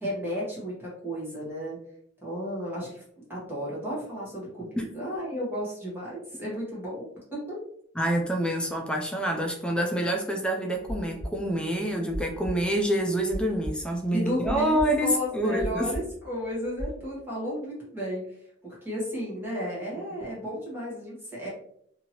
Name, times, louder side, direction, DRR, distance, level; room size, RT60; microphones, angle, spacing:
voice 1, 0.0-1.8 2.2-3.0 3.3-7.6 14.1-18.4 18.6-21.5, equal, 10° right, -6 dB, 1.1 m, -33 dB
voice 2, 8.0-15.9, right 1 dB, 5° left, 2 dB, 0.3 m, -27 dB
sound 1, 10.8-16.9, equal, 25° right, 0.7 m, -36 dB
2.8 x 2.7 x 2.8 m, 0.66 s
head